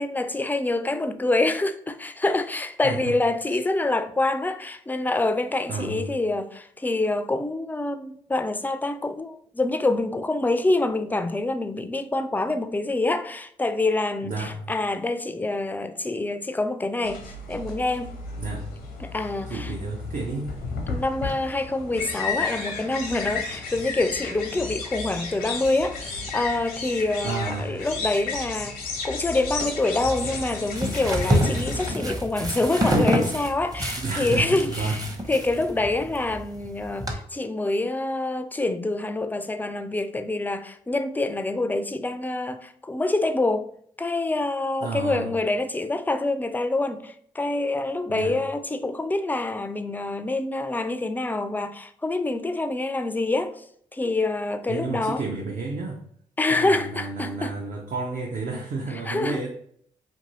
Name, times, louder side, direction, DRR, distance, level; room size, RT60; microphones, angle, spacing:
voice 1, 0.0-18.2 19.0-19.7 20.9-43.7 44.0-53.6 53.9-55.3 56.4-57.6 58.9-59.5, left 2 dB, 10° left, 0.3 m, -26 dB
voice 2, 2.8-3.2 3.5-3.6 5.7-6.2 14.2-14.7 18.4-18.7 19.4-20.5 27.2-27.8 34.0-35.0 44.8-45.3 48.1-48.4 54.7-56.0 56.5-59.5, right 4 dB, 55° right, 0.5 m, -31 dB
sound 1, 17.0-31.9, left 4 dB, 85° left, 0.6 m, -33 dB
sound 2, 30.1-37.1, equal, 20° right, 0.7 m, -27 dB
2.6 x 2.6 x 3.0 m
hypercardioid pair, 45°, 16 cm